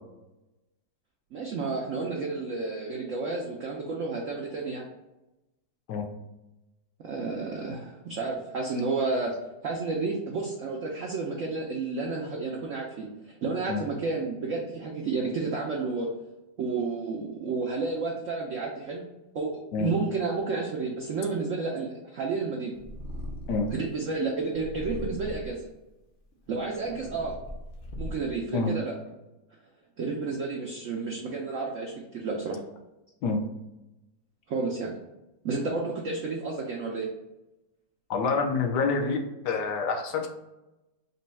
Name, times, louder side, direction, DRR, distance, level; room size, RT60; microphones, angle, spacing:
voice 1, 1.3-4.8 7.0-9.3 9.6-13.1 13.4-16.1 16.6-19.1 19.3-22.7 23.7-25.7 26.5-27.4 28.0-28.9 30.0-32.6 34.5-34.9 35.4-37.1, right 4 dB, 75° right, -1 dB, 0.7 m, -31 dB
Purr, 22.8-23.8 24.5-25.6 26.3-28.4, equal, 55° left, 0.6 m, -39 dB
voice 2, 38.1-40.3, left 4 dB, 70° left, 3 dB, 1.1 m, -27 dB
4.1 x 2.2 x 4.1 m, 0.97 s
omnidirectional pair, 2.0 m